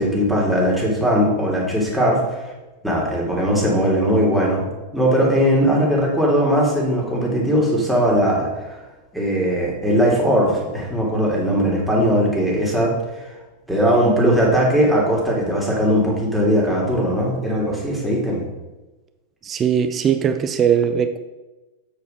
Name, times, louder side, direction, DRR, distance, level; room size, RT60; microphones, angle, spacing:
voice 1, 0.0-2.5 2.8-4.6 4.9-8.8 9.1-13.2 13.7-18.4, equal, 5° right, -4 dB, 2.4 m, -19 dB
voice 2, 19.4-21.2, right 8 dB, 25° right, 9 dB, 0.4 m, -19 dB
8.1 x 4.7 x 5.0 m, 1.1 s
figure-of-eight pair, 90°, 0 cm